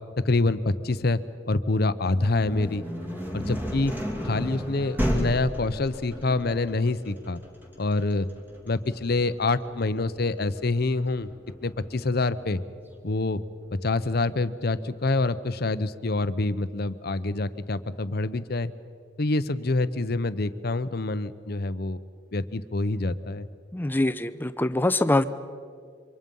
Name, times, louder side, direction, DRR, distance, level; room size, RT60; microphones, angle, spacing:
voice 1, 0.2-1.2 1.5-2.8 3.3-3.9 4.2-7.4 7.8-8.3 8.7-11.3 11.6-12.6 13.0-13.4 13.8-18.7 19.2-22.0 22.3-23.5, left 2 dB, 55° left, 13 dB, 0.8 m, -26 dB
sound 1, 2.1-11.9, equal, 10° right, 2.7 m, -33 dB
voice 2, 23.7-25.2, left 2 dB, 10° left, 12 dB, 0.7 m, -24 dB
27.5 x 24.5 x 5.5 m, 2.2 s
head